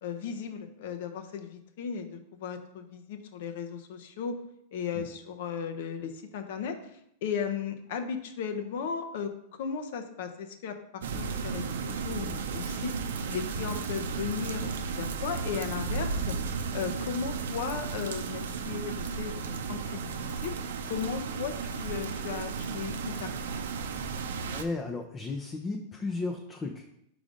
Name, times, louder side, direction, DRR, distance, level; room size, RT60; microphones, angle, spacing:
voice 1, 0.0-4.4 4.7-6.9 7.2-12.9 13.3-16.4 16.7-20.6 20.9-23.3, left 7 dB, 65° left, 7 dB, 0.8 m, -36 dB
sound 1, 11.0-24.6, right 5 dB, 85° right, 0.6 m, -34 dB
voice 2, 24.5-26.8, left 3 dB, 20° left, 2 dB, 0.6 m, -34 dB
5.1 x 4.9 x 3.9 m, 0.75 s
hypercardioid pair, 125°, 0 cm